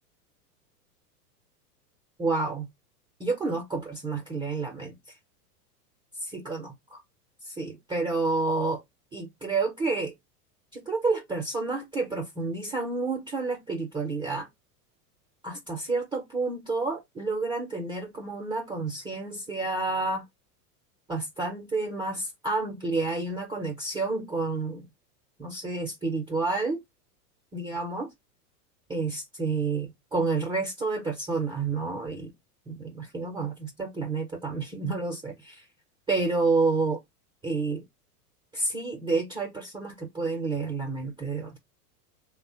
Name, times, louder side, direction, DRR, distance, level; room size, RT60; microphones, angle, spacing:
voice 1, 2.2-2.7 3.2-4.9 6.2-6.7 7.4-8.8 9.1-10.1 10.7-14.5 15.4-20.2 21.1-24.8 25.4-26.8 27.5-28.1 28.9-32.3 32.7-35.6 36.1-37.0 37.4-37.8 38.5-41.6, right 3 dB, 10° right, 0.4 m, -29 dB
3.0 x 2.0 x 2.8 m
hypercardioid pair, 110°, 47 cm